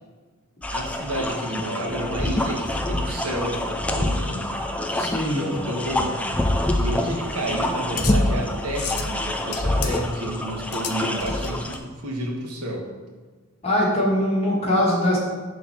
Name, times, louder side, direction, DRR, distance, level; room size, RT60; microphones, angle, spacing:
sound 1, 0.6-11.8, left 1 dB, 5° left, 0.3 m, -26 dB
voice 1, 0.7-4.4 5.3-6.2 6.7-12.8, right 1 dB, 85° right, -1 dB, 1.3 m, -30 dB
voice 2, 4.9-5.4 13.6-15.2, left 1 dB, 30° left, -5 dB, 1.5 m, -22 dB
sound 2, 6.6-11.8, left 8 dB, 70° left, 0.6 m, -36 dB
6.2 x 3.2 x 5.7 m, 1.4 s
head